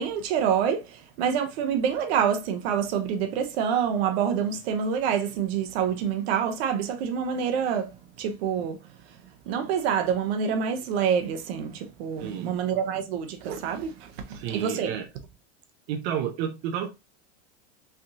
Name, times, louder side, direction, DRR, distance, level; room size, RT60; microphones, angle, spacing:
voice 1, 0.0-8.8 9.1-9.2 9.5-14.9, right 7 dB, 65° right, 0.9 m, -27 dB
voice 2, 12.2-12.6 14.3-15.1 15.9-16.9, right 9 dB, 45° right, 0.7 m, -31 dB
3.7 x 3.5 x 2.7 m
supercardioid pair, 145°, 34 cm